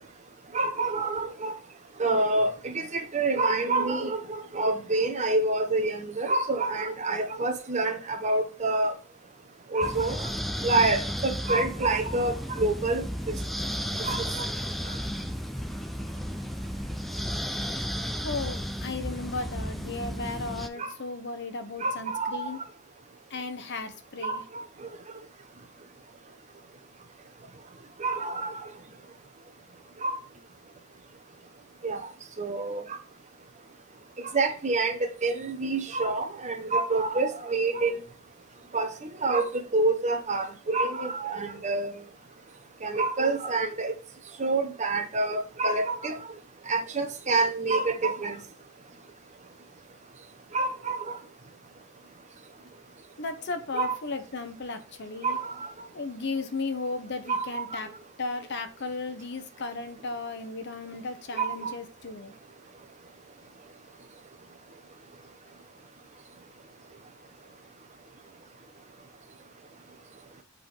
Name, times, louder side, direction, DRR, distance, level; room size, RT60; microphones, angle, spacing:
voice 1, 0.5-1.5 2.0-8.9 9.7-10.2 10.6-13.0 14.0-14.5 20.8-20.9 21.8-22.5 24.2-24.4 24.8-24.9 28.0-28.6 30.0-30.2 31.8-32.1 32.4-32.8 34.3-38.0 38.7-41.9 42.8-43.9 44.4-46.2 46.7-48.4 50.5-51.2 53.7-54.0 55.2-55.7 57.3-57.8 61.4-61.7, right 3 dB, 35° right, 1.0 m, -27 dB
sound 1, 9.8-20.7, equal, ahead, 0.5 m, -33 dB
voice 2, 18.2-22.6 23.3-24.4 53.2-55.4 55.9-57.9 58.2-62.3, left 3 dB, 55° left, 1.0 m, -35 dB
8.0 x 3.9 x 3.4 m
head